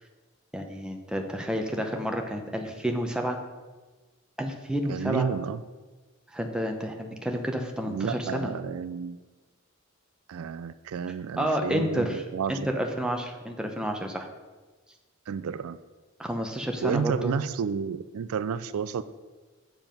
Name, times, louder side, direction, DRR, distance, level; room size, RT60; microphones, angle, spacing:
voice 1, 0.5-3.4 4.4-5.3 6.3-8.5 11.4-14.3 16.2-17.3, equal, 5° right, 3 dB, 0.7 m, -30 dB
voice 2, 4.9-5.6 7.9-9.2 10.3-12.7 15.3-15.8 16.8-19.0, right 6 dB, 80° right, 15 dB, 0.4 m, -31 dB
7.4 x 7.1 x 5.3 m, 1.3 s
head